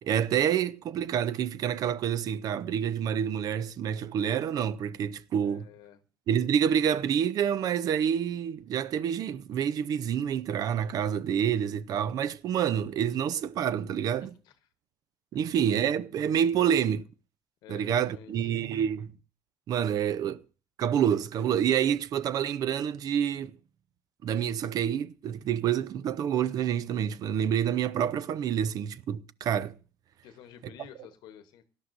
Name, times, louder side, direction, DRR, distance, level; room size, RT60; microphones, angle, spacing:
voice 1, 0.0-5.7 6.3-14.3 15.3-17.0 17.7-19.1 19.7-20.4 20.8-23.6 24.2-29.7, right 9 dB, 55° right, 0.6 m, -28 dB
voice 2, 5.4-6.0 14.2-14.5 16.6-17.0 17.6-18.6 30.2-31.6, left 10 dB, 70° left, 0.9 m, -50 dB
17.5 x 11.5 x 2.6 m
supercardioid pair, 95°, 7 cm